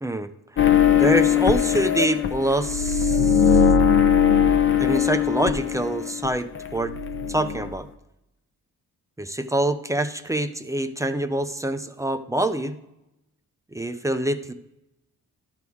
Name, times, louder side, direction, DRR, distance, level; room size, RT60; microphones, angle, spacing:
voice 1, 0.0-0.6 0.9-3.6 4.8-7.0 7.3-7.9 9.2-12.8 13.7-14.5, right 1 dB, 10° right, 9 dB, 0.4 m, -25 dB
sound 1, 0.6-6.3 6.5-7.7, left 8 dB, 40° left, 0.7 m, -20 dB
12.0 x 6.2 x 3.6 m, 0.89 s
cardioid pair, 105°, 33 cm